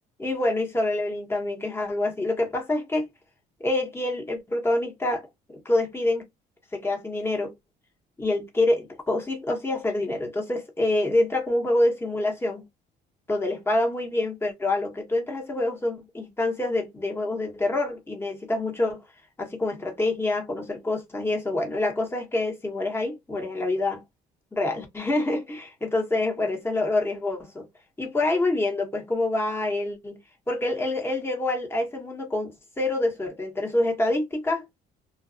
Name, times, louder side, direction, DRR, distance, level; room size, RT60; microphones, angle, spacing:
voice 1, 0.2-3.1 3.6-6.2 6.7-7.5 8.2-12.6 13.3-19.0 19.4-24.0 24.5-27.7 28.0-30.2 30.5-34.6, left 2 dB, 15° left, 1.0 m, -26 dB
2.5 x 2.3 x 2.4 m
cardioid pair, 110°, 17 cm